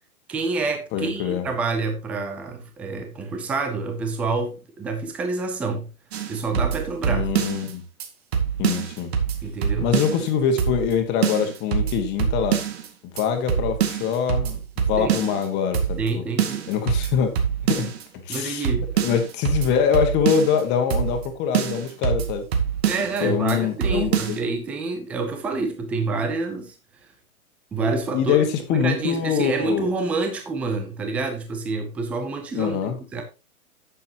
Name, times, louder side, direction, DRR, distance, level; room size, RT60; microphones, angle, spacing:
voice 1, 0.3-5.9 6.3-7.3 9.4-9.9 15.0-15.2 16.0-16.7 18.3-18.9 22.8-26.7 27.7-28.4 28.7-33.2, right 3 dB, 5° right, 0.4 m, -27 dB
voice 2, 0.9-1.4 7.1-7.8 8.6-9.1 9.8-12.6 13.1-16.2 16.7-17.3 17.7-17.9 18.2-18.7 19.0-22.5 23.2-24.4 28.1-29.8 32.5-33.0, left 7 dB, 25° left, 1.7 m, -24 dB
sound 1, 6.1-7.7 8.0-8.1 8.3-10.3 10.6-11.0 11.2-12.9 13.2-13.3 13.5-15.5 15.7-16.1 16.4-18.0 18.3-18.4 18.6-20.6 20.9-21.3 21.5-23.2 23.5-23.6 23.8-24.4, right 8 dB, 45° right, 2.2 m, -25 dB
11.0 x 8.3 x 2.9 m
hypercardioid pair, 140°, 42 cm